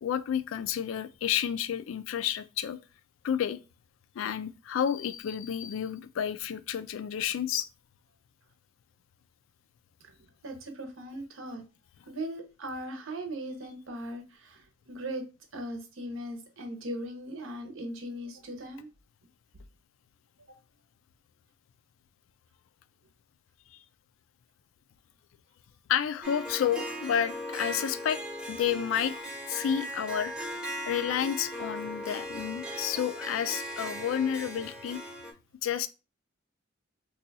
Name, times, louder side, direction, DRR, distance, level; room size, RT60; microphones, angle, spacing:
voice 1, 0.0-2.8 3.2-3.6 4.2-7.7 25.9-28.2 28.5-30.5 30.9-35.0 35.6-35.9, left 9 dB, 70° left, 0.3 m, -30 dB
voice 2, 10.4-11.6 12.1-15.3 15.5-18.9 20.5-20.6, right 1 dB, 75° right, 0.8 m, -39 dB
Harp, 26.2-35.3, equal, 5° right, 0.7 m, -38 dB
2.7 x 2.3 x 4.0 m
head